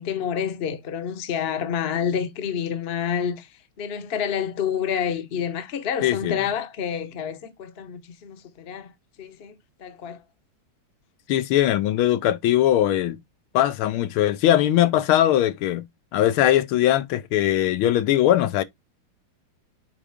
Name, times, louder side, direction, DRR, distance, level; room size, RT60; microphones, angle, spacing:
voice 1, 0.0-3.5 3.8-8.9 9.2-10.2, left 8 dB, 40° left, 0.9 m, -28 dB
voice 2, 6.0-6.4 11.3-13.2 13.5-15.9 16.1-18.6, left 12 dB, 85° left, 1.5 m, -20 dB
8.4 x 3.7 x 3.4 m
omnidirectional pair, 2.3 m